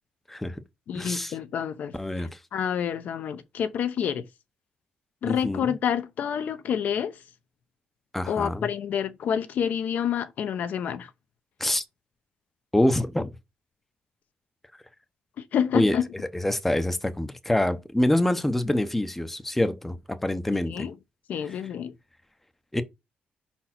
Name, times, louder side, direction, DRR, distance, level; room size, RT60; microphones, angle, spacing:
voice 1, 0.3-0.6 0.9-1.3 2.0-2.4 5.2-5.7 8.1-8.7 11.6-11.8 12.7-13.3 15.7-16.0 16.3-20.9 22.7-22.8, left 1 dB, 5° left, 0.6 m, -25 dB
voice 2, 0.9-4.3 5.2-7.2 8.3-11.1 15.4-16.1 20.5-20.9 21.3-22.0, left 8 dB, 60° left, 0.7 m, -28 dB
5.3 x 4.3 x 5.8 m
cardioid pair, 155°, 3 cm